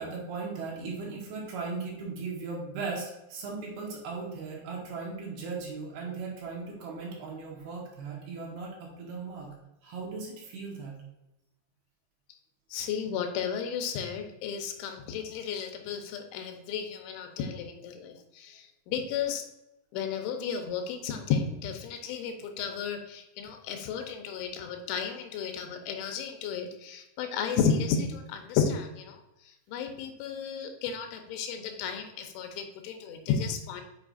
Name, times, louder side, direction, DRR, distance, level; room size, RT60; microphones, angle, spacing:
voice 1, 0.0-9.5 9.8-11.0, right 4 dB, 65° right, -3 dB, 3.1 m, -37 dB
voice 2, 12.7-19.5 19.9-29.2 29.7-33.8, left 6 dB, 90° left, 5 dB, 3.3 m, -33 dB
8.7 x 5.7 x 2.5 m, 0.91 s
omnidirectional pair, 5.3 m